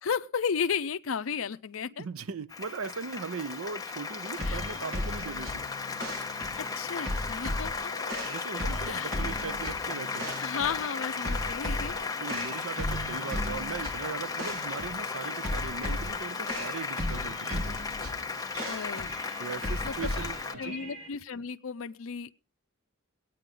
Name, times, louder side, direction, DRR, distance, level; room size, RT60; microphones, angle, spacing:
voice 1, 0.0-2.1 4.5-4.6 6.6-7.7 8.9-9.1 10.4-11.9 18.7-19.1 19.8-20.1 20.6-22.3, left 6 dB, 75° left, 0.5 m, -33 dB
voice 2, 2.0-5.7 8.2-10.3 12.2-17.8 19.4-20.8, right 5 dB, 85° right, 0.6 m, -39 dB
Applause, 2.5-20.6, left 4 dB, 20° left, 0.7 m, -35 dB
sound 1, 4.4-21.1, left 1 dB, 70° right, 3.2 m, -37 dB
22.5 x 9.2 x 3.7 m
head